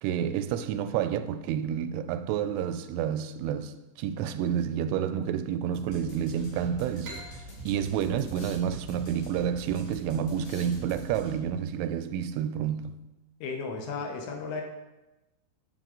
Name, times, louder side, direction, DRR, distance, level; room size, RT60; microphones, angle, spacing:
voice 1, 0.0-13.0, right 9 dB, 85° right, 3.0 m, -30 dB
sound 1, 5.7-11.6, right 1 dB, 55° left, 4.8 m, -44 dB
sound 2, 7.0-10.4, right 1 dB, 35° right, 1.3 m, -48 dB
voice 2, 13.4-14.6, left 4 dB, 75° left, 3.0 m, -34 dB
11.0 x 8.0 x 3.9 m
omnidirectional pair, 5.5 m